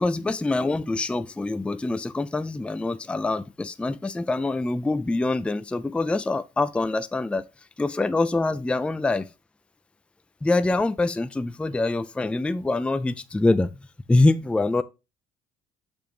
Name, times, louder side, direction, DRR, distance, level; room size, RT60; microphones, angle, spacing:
voice 1, 0.0-7.4 7.8-9.3 10.4-14.8, left 2 dB, 5° left, 0.4 m, -25 dB
6.9 x 3.1 x 5.1 m
cardioid pair, 110°, 17 cm